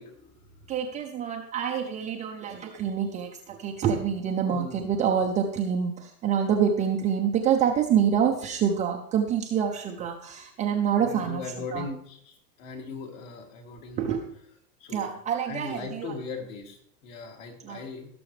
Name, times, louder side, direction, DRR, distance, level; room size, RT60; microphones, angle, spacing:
voice 1, 0.0-0.6 4.5-4.9 11.0-14.1 14.8-15.1 15.4-18.2, left 4 dB, 50° left, 2 dB, 2.7 m, -39 dB
voice 2, 0.7-11.4 11.7-11.9 14.0-14.3 14.9-16.1 17.6-17.8, right 8 dB, 15° right, 1 dB, 0.5 m, -26 dB
17.0 x 6.9 x 3.2 m, 0.63 s
hypercardioid pair, 130°, 50 cm